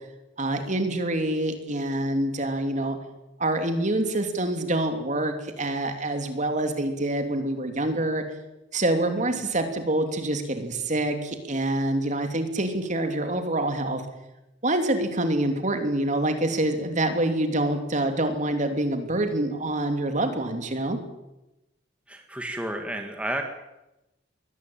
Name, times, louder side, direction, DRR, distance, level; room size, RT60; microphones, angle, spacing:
voice 1, 0.4-3.0 3.4-8.2 8.7-14.0 14.6-21.0, right 1 dB, 40° right, 6 dB, 3.1 m, -26 dB
voice 2, 22.1-23.4, right 1 dB, 5° right, 3 dB, 1.9 m, -31 dB
22.5 x 18.5 x 8.8 m, 0.96 s
head